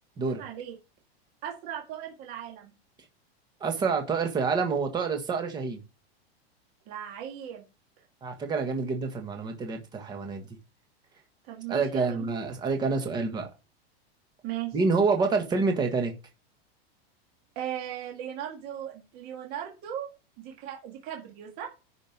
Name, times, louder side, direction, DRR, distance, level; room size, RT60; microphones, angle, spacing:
voice 1, 0.3-0.7 1.4-2.7 6.9-7.6 11.4-12.3 14.4-14.8 17.6-20.1 20.4-21.7, right 10 dB, 30° right, 2.0 m, -37 dB
voice 2, 3.6-5.8 8.2-10.5 11.7-13.5 14.7-16.1, right 4 dB, 15° right, 1.5 m, -27 dB
10.5 x 5.2 x 5.3 m
supercardioid pair, 175°, 31 cm